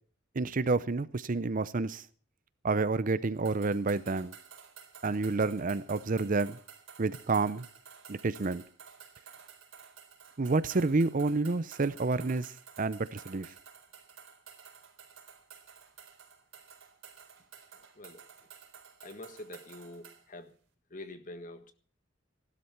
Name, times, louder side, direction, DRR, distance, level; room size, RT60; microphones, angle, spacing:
voice 1, 0.4-2.0 2.6-4.3 5.0-6.6 7.0-7.6 8.1-8.6 10.4-12.5 12.8-13.5, right 3 dB, 45° right, 0.6 m, -29 dB
sound 1, 3.5-20.2, right 7 dB, 75° right, 4.0 m, -53 dB
voice 2, 19.0-20.5 20.9-21.7, left 1 dB, 40° left, 1.6 m, -45 dB
15.5 x 12.5 x 5.8 m
head